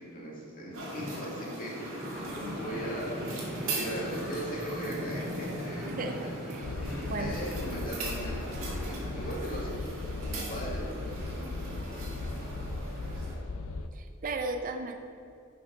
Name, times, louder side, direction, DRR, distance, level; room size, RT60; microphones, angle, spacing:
voice 1, 0.0-10.0 10.2-12.9 13.1-13.4, equal, 45° left, -4 dB, 1.8 m, -40 dB
sound 1, 0.7-13.3, right 1 dB, 70° right, 2.1 m, -39 dB
sound 2, 2.1-8.9, right 1 dB, ahead, 1.7 m, -44 dB
voice 2, 2.2-2.6 5.9-6.7 7.0-7.4 13.9-15.0, right 3 dB, 40° right, 5 dB, 0.5 m, -36 dB
sound 3, 6.6-13.9, left 2 dB, 70° left, 0.5 m, -37 dB
10.5 x 5.4 x 3.8 m, 2.4 s
head